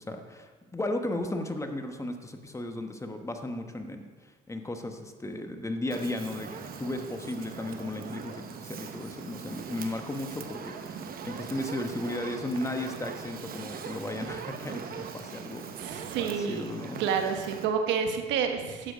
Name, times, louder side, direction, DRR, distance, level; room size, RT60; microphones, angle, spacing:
voice 1, 0.0-15.6 16.2-17.0, left 1 dB, 15° left, 5 dB, 1.2 m, -35 dB
Fire, 5.9-17.7, right 6 dB, 50° right, 1.1 m, -41 dB
voice 2, 15.8-16.7 17.0-18.9, right 6 dB, 75° right, 6 dB, 1.3 m, -29 dB
11.5 x 7.7 x 5.0 m, 1.4 s
supercardioid pair, 75°, 19 cm